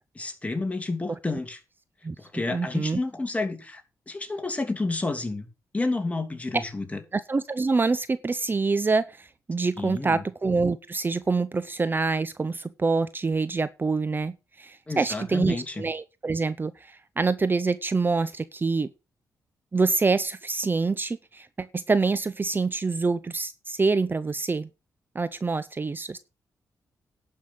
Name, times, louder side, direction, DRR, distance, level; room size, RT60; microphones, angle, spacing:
voice 1, 0.1-1.6 2.2-3.8 4.1-5.5 5.7-7.0 9.8-10.2 14.9-15.8, left 3 dB, 20° left, 2.6 m, -30 dB
voice 2, 2.5-3.0 7.1-18.9 19.7-24.7 25.1-26.2, right 4 dB, 30° right, 0.7 m, -26 dB
11.0 x 5.6 x 7.6 m
cardioid pair, 75°, 7 cm